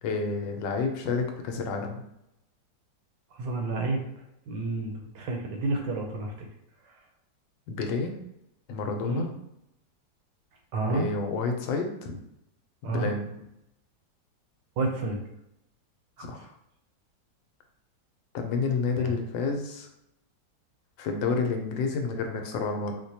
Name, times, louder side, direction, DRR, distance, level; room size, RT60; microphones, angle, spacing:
voice 1, 0.0-2.0 7.7-8.1 8.7-9.3 10.9-12.2 12.8-13.3 16.2-16.5 18.3-19.9 21.0-23.0, left 4 dB, 90° left, 4 dB, 1.3 m, -29 dB
voice 2, 3.3-4.0 4.5-6.3 9.0-9.2 10.7-11.1 12.8-13.1 14.8-15.2 16.2-16.3 19.0-19.1, right 2 dB, 75° right, 3 dB, 1.2 m, -30 dB
4.6 x 2.1 x 2.7 m, 0.80 s
omnidirectional pair, 2.0 m